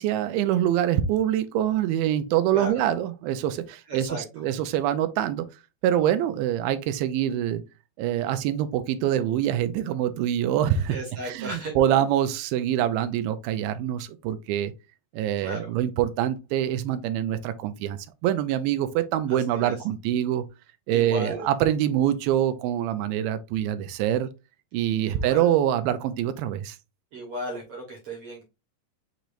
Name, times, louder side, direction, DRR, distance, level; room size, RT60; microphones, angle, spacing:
voice 1, 0.0-5.5 5.8-7.6 8.0-11.0 11.2-14.7 15.1-20.5 20.9-24.3 24.7-26.8, right 11 dB, 90° right, 2.4 m, -25 dB
voice 2, 3.9-4.5 10.9-11.8 15.4-15.7 19.3-19.8 20.9-21.5 25.0-25.5 27.1-28.4, right 1 dB, 55° right, 1.7 m, -35 dB
6.7 x 3.1 x 2.5 m
omnidirectional pair, 4.2 m